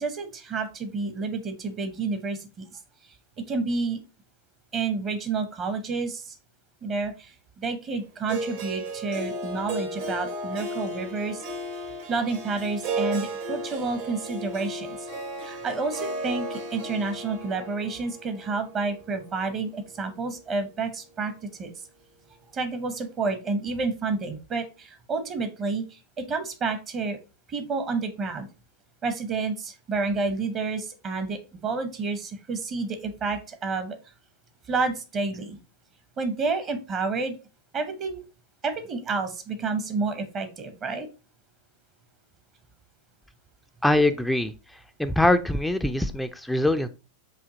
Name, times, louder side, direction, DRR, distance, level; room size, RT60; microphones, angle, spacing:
voice 1, 0.0-2.6 3.5-4.0 4.7-6.4 6.8-11.4 12.1-15.1 15.4-21.3 21.6-21.7 22.5-27.2 27.5-28.5 29.0-34.0 34.7-35.6 36.2-37.4 37.7-38.2 38.6-41.1, right 4 dB, 30° right, 8 dB, 0.8 m, -29 dB
Harp, 8.3-20.4, right 1 dB, 55° right, 1.1 m, -35 dB
voice 2, 43.8-44.5 45.0-46.9, left 1 dB, ahead, 7 dB, 0.3 m, -23 dB
5.0 x 2.7 x 3.8 m, 0.31 s
figure-of-eight pair, 90°, 0 cm